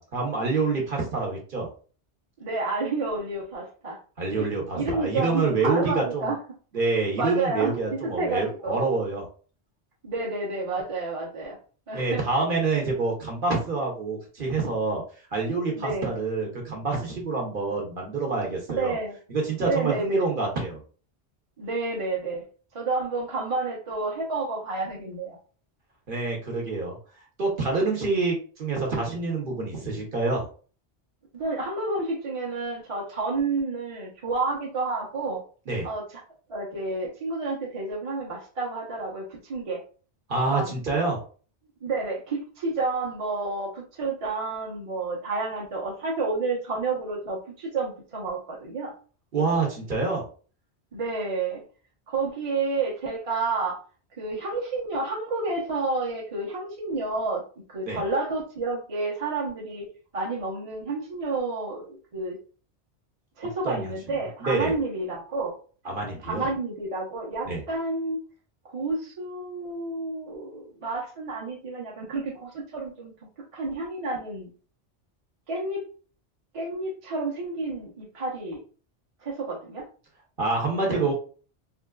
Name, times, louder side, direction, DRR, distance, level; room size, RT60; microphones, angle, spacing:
voice 1, 0.0-1.7 4.2-6.3 6.7-9.3 11.9-15.0 15.3-19.0 19.3-20.8 26.1-26.9 27.4-30.5 35.7-35.9 40.3-41.2 49.3-50.2 57.9-58.0 63.6-63.9 64.4-64.7 65.8-66.5 67.4-67.6 80.4-81.1, right 3 dB, 55° right, -1 dB, 1.0 m, -27 dB
voice 2, 2.4-4.0 4.4-6.4 7.2-8.8 10.0-11.6 11.9-12.2 15.8-16.1 18.7-19.2 19.6-20.3 21.6-22.4 22.7-25.4 31.3-35.4 35.8-36.2 36.5-39.8 40.5-40.7 41.8-48.9 50.9-51.6 52.1-53.8 54.2-57.4 57.7-59.9 60.1-62.4 63.4-65.5 66.2-68.2 68.6-73.1 73.5-74.5 75.5-75.9 76.5-78.6 79.2-79.9 80.9-81.1, right 3 dB, 35° right, -2 dB, 0.8 m, -30 dB
3.7 x 2.4 x 2.3 m, 0.39 s
omnidirectional pair, 1.1 m